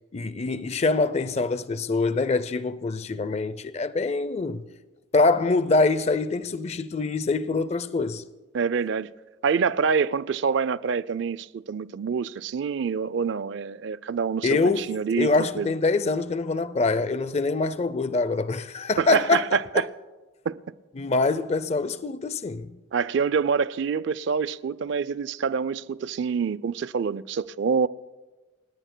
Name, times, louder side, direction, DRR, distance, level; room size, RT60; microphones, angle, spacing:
voice 1, 0.1-4.6 5.1-8.2 14.4-14.9 15.2-19.8 21.0-22.7, left 3 dB, 30° left, 0.4 m, -24 dB
voice 2, 8.5-9.1 9.4-15.7 19.0-19.9 20.5-20.6 22.9-27.9, right 6 dB, 60° right, 0.4 m, -26 dB
29.5 x 18.0 x 2.2 m
head